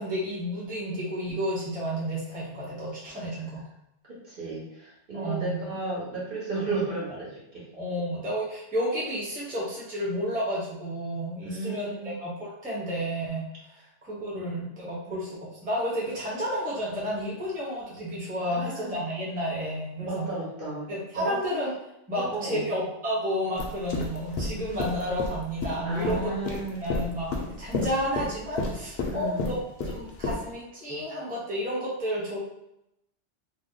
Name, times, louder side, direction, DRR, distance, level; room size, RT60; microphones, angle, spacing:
voice 1, 0.0-3.6 5.1-5.6 7.8-13.4 14.0-20.3 20.9-21.7 22.1-29.6 29.8-32.4, equal, 10° right, -7 dB, 0.8 m, -31 dB
voice 2, 4.0-7.6 11.4-12.1 14.3-14.6 15.1-15.2 18.4-19.0 20.0-21.4 22.1-22.7 25.8-26.8 29.1-29.5, right 3 dB, 50° right, -7 dB, 1.2 m, -34 dB
sound 1, 23.6-30.4, left 3 dB, 60° left, 0.8 m, -31 dB
2.8 x 2.1 x 3.6 m, 0.83 s
omnidirectional pair, 1.2 m